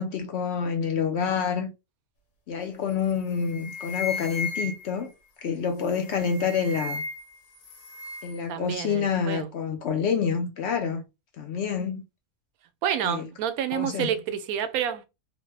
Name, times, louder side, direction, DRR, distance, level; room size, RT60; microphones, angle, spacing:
voice 1, 0.0-1.7 2.5-5.1 5.4-7.0 8.2-11.0 11.4-12.0 13.0-13.3 13.7-14.1, left 6 dB, 65° left, 0.7 m, -27 dB
sound 1, 2.9-3.1 3.4-5.1 5.9-7.4 7.6-8.4, left 3 dB, 80° left, 1.3 m, -35 dB
voice 2, 8.5-9.5 12.8-15.1, right 9 dB, 90° right, 1.0 m, -29 dB
3.0 x 2.1 x 3.2 m
omnidirectional pair, 1.5 m